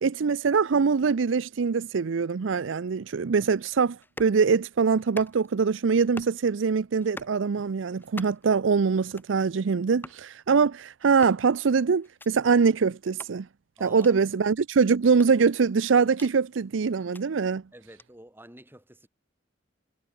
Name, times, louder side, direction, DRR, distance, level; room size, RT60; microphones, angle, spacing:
voice 1, 0.0-13.5 13.8-17.6, right 5 dB, 75° right, 0.5 m, -23 dB
sound 1, 4.0-4.4 5.0-5.6 6.0-6.4 7.0-7.4 8.0-8.5 9.0-9.4 10.0-10.2 11.0-11.4 12.0-12.3 13.0-13.3 14.0-14.1 15.0-16.4 17.0-17.2 18.0-18.1, left 1 dB, 10° left, 1.8 m, -45 dB
voice 2, 13.8-14.2 17.7-19.1, right 1 dB, 10° right, 6.1 m, -49 dB
head